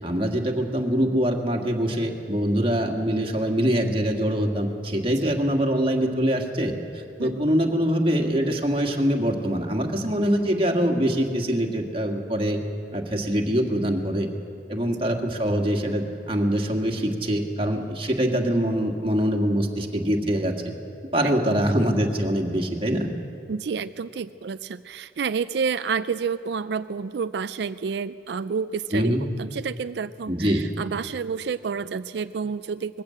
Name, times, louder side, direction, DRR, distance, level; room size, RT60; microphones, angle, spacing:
voice 1, 0.0-12.6 12.9-14.3 14.7-20.6 21.1-23.1 28.9-29.3 30.3-30.7, equal, 30° right, 2 dB, 1.9 m, -24 dB
voice 2, 18.3-18.6 21.2-21.6 23.5-33.0, right 5 dB, 65° right, 13 dB, 0.4 m, -30 dB
21.0 x 15.5 x 8.5 m, 2.8 s
head